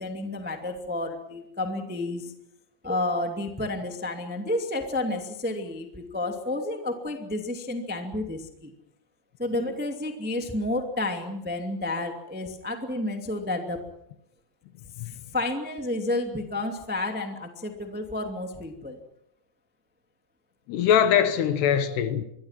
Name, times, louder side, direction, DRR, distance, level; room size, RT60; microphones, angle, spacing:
voice 1, 0.0-2.3 2.8-8.7 9.4-13.8 15.0-19.0, left 2 dB, 10° right, 0.6 m, -31 dB
voice 2, 20.7-22.3, left 9 dB, 70° left, 3.0 m, -22 dB
26.0 x 22.5 x 5.9 m
omnidirectional pair, 5.4 m